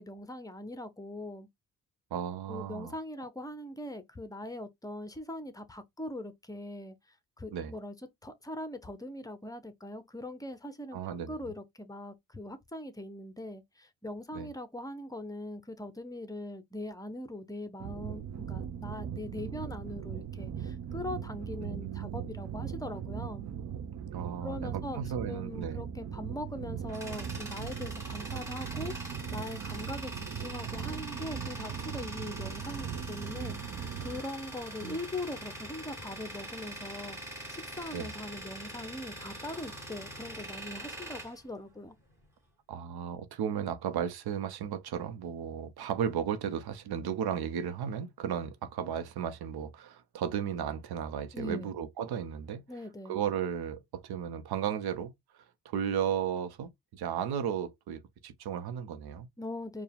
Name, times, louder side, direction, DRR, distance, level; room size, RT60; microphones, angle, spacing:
voice 1, 0.0-1.5 2.5-6.9 7.4-7.9 8.2-23.5 24.4-25.0 25.3-37.2 37.5-41.9 51.3-51.7 52.7-53.2 59.4-59.8, left 1 dB, 10° left, 0.9 m, -41 dB
voice 2, 2.1-2.9 7.5-7.7 10.9-11.3 14.3-14.5 21.6-22.3 24.1-25.8 34.8-35.0 37.9-38.1 42.7-52.6 53.1-59.3, right 8 dB, 70° right, 0.9 m, -35 dB
sound 1, 17.8-34.2, right 8 dB, 45° right, 0.6 m, -39 dB
Tools, 26.4-42.2, right 1 dB, 5° right, 2.2 m, -43 dB
4.5 x 2.4 x 3.5 m
supercardioid pair, 75°, 40 cm